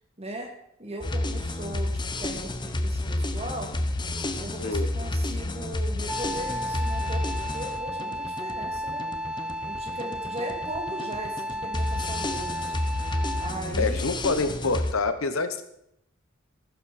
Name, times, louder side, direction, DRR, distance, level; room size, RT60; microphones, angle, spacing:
voice 1, 0.2-0.5 0.8-3.7 4.4-9.1 9.3-12.7 13.4-14.1, right 1 dB, 30° right, 2 dB, 2.5 m, -38 dB
sound 1, 1.0-14.9, left 1 dB, 20° left, 0.9 m, -30 dB
Wind instrument woodwind instrument, 6.1-13.7, equal, 5° right, 0.5 m, -33 dB
voice 2, 13.8-15.6, left 3 dB, 80° left, 10 dB, 1.2 m, -26 dB
14.5 x 12.0 x 4.3 m, 0.76 s
head